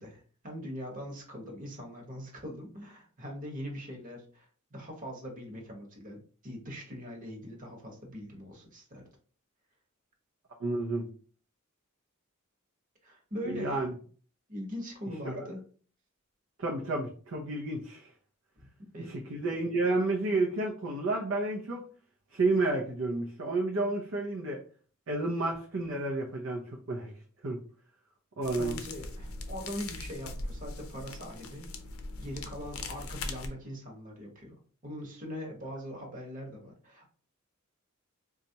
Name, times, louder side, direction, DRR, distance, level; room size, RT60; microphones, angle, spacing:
voice 1, 0.0-9.0 13.0-13.8 14.5-15.6 18.6-19.1 28.4-31.7 32.2-34.5 34.8-37.1, equal, 40° right, 0 dB, 1.1 m, -42 dB
voice 2, 10.6-11.1 13.5-13.9 15.2-15.5 16.6-18.1 19.3-21.9 22.3-24.6 25.1-27.1 27.4-27.6 28.4-28.8, right 2 dB, 65° right, 0 dB, 0.6 m, -30 dB
sound 1, 28.4-33.5, left 2 dB, 85° left, 0.5 m, -40 dB
4.1 x 2.4 x 2.7 m, 0.42 s
head